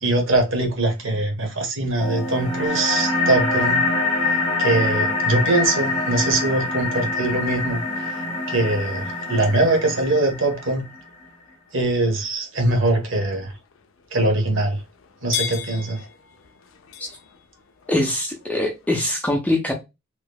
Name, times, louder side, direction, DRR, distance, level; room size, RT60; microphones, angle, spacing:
voice 1, 0.0-3.8 4.2-10.9 11.7-13.6 14.1-14.8 15.2-16.0, right 2 dB, 60° right, 1.0 m, -22 dB
sound 1, 2.0-11.0, left 2 dB, 25° left, 0.8 m, -24 dB
sound 2, 9.3-19.0, left 8 dB, 60° left, 0.4 m, -39 dB
voice 2, 17.9-19.7, left 1 dB, 5° left, 0.5 m, -22 dB
3.0 x 2.3 x 3.4 m
head